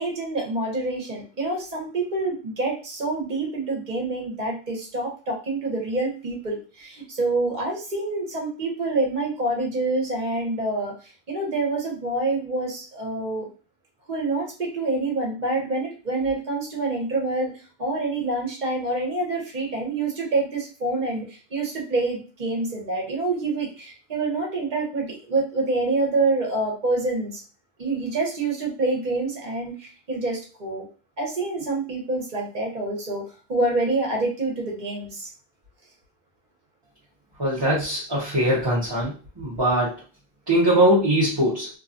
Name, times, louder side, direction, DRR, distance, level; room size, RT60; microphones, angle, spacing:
voice 1, 0.0-10.9 11.3-13.5 14.1-17.5 17.8-27.4 27.8-30.9 31.2-35.3, right 2 dB, 50° right, -1 dB, 1.0 m, -27 dB
voice 2, 37.4-40.0 40.5-41.7, right 1 dB, 30° right, -8 dB, 0.7 m, -21 dB
2.7 x 2.3 x 2.5 m, 0.36 s
omnidirectional pair, 1.0 m